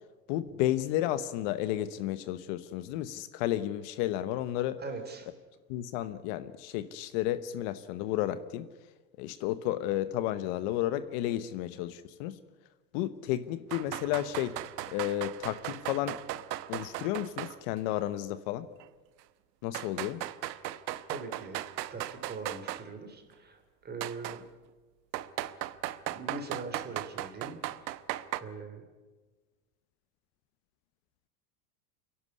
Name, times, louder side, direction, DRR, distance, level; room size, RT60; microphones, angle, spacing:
voice 1, 0.3-4.8 5.7-8.7 9.2-12.4 12.9-14.6 14.9-16.2 16.7-18.7 19.6-20.2, left 13 dB, 50° left, 13 dB, 1.0 m, -32 dB
voice 2, 4.8-5.3 21.1-21.6 21.9-24.4 26.1-28.0 28.4-28.9, right 3 dB, 20° right, 6 dB, 3.1 m, -42 dB
sound 1, 13.7-17.6 17.9-18.0 18.8-18.9 19.7-22.8 24.0-24.4 25.1-28.4, right 14 dB, 85° right, 1.1 m, -37 dB
25.0 x 11.5 x 9.7 m, 1.3 s
supercardioid pair, 135°, 50 cm